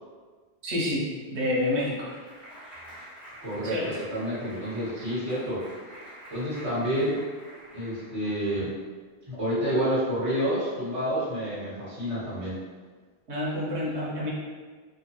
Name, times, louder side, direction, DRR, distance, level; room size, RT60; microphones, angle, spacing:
voice 1, 0.6-2.1 3.6-4.0 5.0-5.1 13.3-14.3, left 1 dB, 85° right, -4 dB, 1.1 m, -28 dB
Clapping, 1.2-8.5, equal, 50° left, 1.3 m, -47 dB
voice 2, 3.4-3.7 4.1-5.6 6.3-7.2 7.7-8.7 9.3-12.6, equal, 30° right, -12 dB, 1.6 m, -29 dB
3.0 x 2.3 x 2.8 m, 1.4 s
omnidirectional pair, 1.1 m